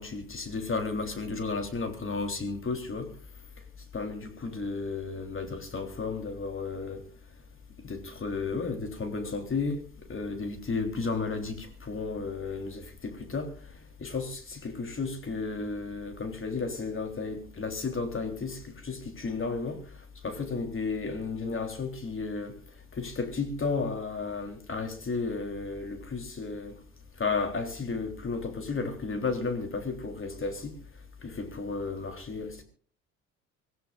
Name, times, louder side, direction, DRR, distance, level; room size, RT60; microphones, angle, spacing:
voice 1, 0.0-3.1 3.9-7.0 7.8-9.8 10.1-13.5 14.0-19.8 20.2-22.6 22.9-26.8 27.2-30.7 31.2-32.6, left 4 dB, 30° left, 6 dB, 3.6 m, -33 dB
25.5 x 16.0 x 2.5 m, 0.41 s
figure-of-eight pair, 50°, 41 cm